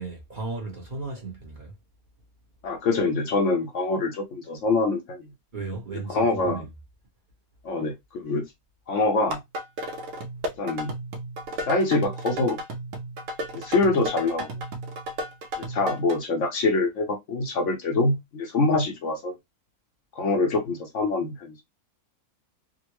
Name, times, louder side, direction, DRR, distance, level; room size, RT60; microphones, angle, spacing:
voice 1, 0.0-1.7 5.5-6.7, right 3 dB, 35° right, 1.0 m, -35 dB
voice 2, 2.6-5.3 6.1-6.7 7.6-8.5 8.9-9.4 10.6-10.9 11.6-12.6 13.5-14.5 15.6-19.3 20.2-21.5, left 3 dB, 60° left, 0.9 m, -25 dB
sound 1, 9.2-16.2, right 1 dB, 65° right, 1.1 m, -34 dB
3.7 x 2.1 x 2.9 m
omnidirectional pair, 1.6 m